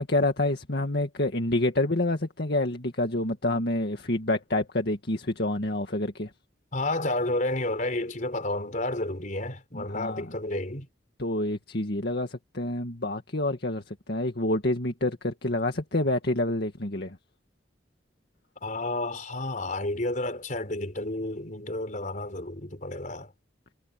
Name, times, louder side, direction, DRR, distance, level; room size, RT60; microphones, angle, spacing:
voice 1, 0.0-6.3 9.7-10.2 11.2-17.2, left 1 dB, 60° left, 2.0 m, -28 dB
voice 2, 6.7-10.9 18.6-23.3, left 2 dB, 45° left, 4.3 m, -31 dB
head